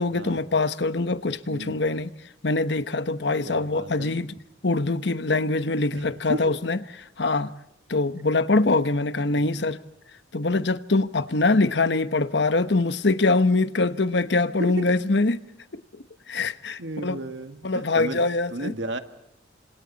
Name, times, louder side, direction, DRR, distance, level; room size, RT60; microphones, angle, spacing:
voice 1, 0.0-2.1 2.4-4.3 4.6-6.8 7.2-7.5 7.9-9.8 10.3-15.4 16.3-17.2 17.6-18.7, left 3 dB, 65° left, 1.1 m, -23 dB
voice 2, 1.5-1.8 3.4-4.1 5.9-6.5 14.6-14.9 16.8-18.2 18.5-19.0, right 1 dB, 80° right, 1.8 m, -33 dB
29.5 x 26.5 x 4.1 m
head